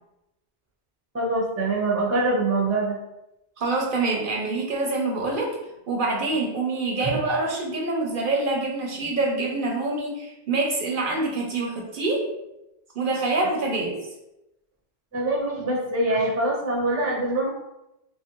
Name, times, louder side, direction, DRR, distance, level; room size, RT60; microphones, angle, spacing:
voice 1, 1.1-3.0 7.0-7.1 15.1-17.5, right 2 dB, 20° right, -2 dB, 0.4 m, -24 dB
voice 2, 3.6-5.6 5.9-12.3 13.0-14.0, right 3 dB, 60° right, 0 dB, 0.6 m, -26 dB
2.8 x 2.4 x 2.9 m, 0.90 s
omnidirectional pair, 1.1 m